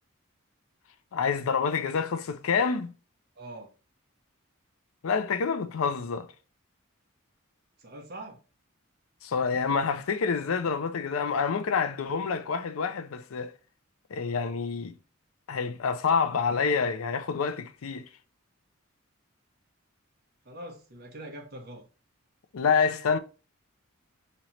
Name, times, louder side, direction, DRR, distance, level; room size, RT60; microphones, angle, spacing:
voice 1, 1.1-2.9 5.0-6.3 9.2-13.5 14.1-15.0 15.5-18.1 22.5-23.2, left 5 dB, 80° left, 0.5 m, -27 dB
voice 2, 3.4-3.7 7.8-8.4 20.4-21.8, right 1 dB, 50° right, 1.0 m, -43 dB
3.1 x 2.9 x 4.1 m
head